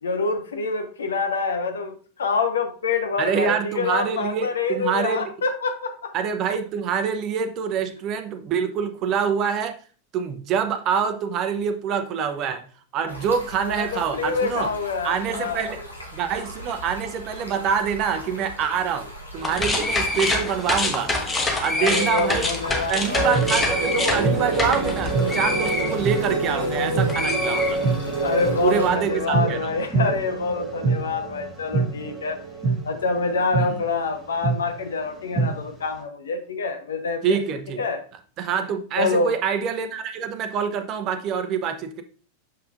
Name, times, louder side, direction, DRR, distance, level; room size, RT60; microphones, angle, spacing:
voice 1, 0.0-6.1 13.6-15.6 21.8-23.4 28.2-32.4 32.8-37.4 37.8-38.0 39.0-39.3, left 4 dB, 65° left, 6 dB, 1.0 m, -26 dB
voice 2, 3.2-5.3 6.1-9.8 10.1-12.6 12.9-14.7 15.0-15.8 16.1-19.1 19.3-21.1 21.6-22.5 22.9-27.8 28.6-29.7 33.6-33.7 37.2-37.8 38.4-42.0, right 7 dB, 35° right, 8 dB, 0.8 m, -25 dB
Stream, 13.1-28.9, equal, 80° left, 1.5 m, -39 dB
sound 1, 19.4-26.8 27.1-28.3, left 2 dB, 15° left, 1.1 m, -26 dB
sound 2, 23.1-33.9 34.4-34.5 35.0-35.5, right 3 dB, 10° right, 2.3 m, -25 dB
6.7 x 5.6 x 2.5 m, 0.40 s
figure-of-eight pair, 90°, 0 cm